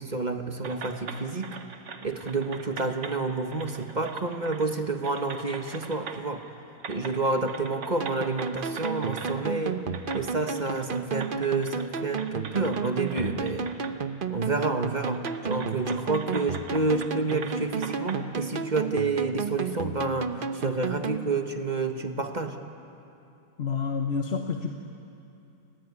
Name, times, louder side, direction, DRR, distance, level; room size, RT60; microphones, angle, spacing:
voice 1, 0.0-1.6 2.0-6.4 6.9-9.8 10.1-13.7 14.3-22.6, right 3 dB, 25° right, 6 dB, 1.3 m, -29 dB
sound 1, 0.6-3.2 3.5-4.7 5.0-6.4 6.8-7.2 7.5-9.4 9.9-14.0 14.3-14.4 15.1-18.2, right 5 dB, 80° right, 2.2 m, -41 dB
sound 2, 8.0-21.2, right 6 dB, 45° right, 0.7 m, -33 dB
voice 2, 23.6-24.8, left 5 dB, 40° left, 4 dB, 1.2 m, -29 dB
29.5 x 20.0 x 9.7 m, 2.7 s
omnidirectional pair, 1.9 m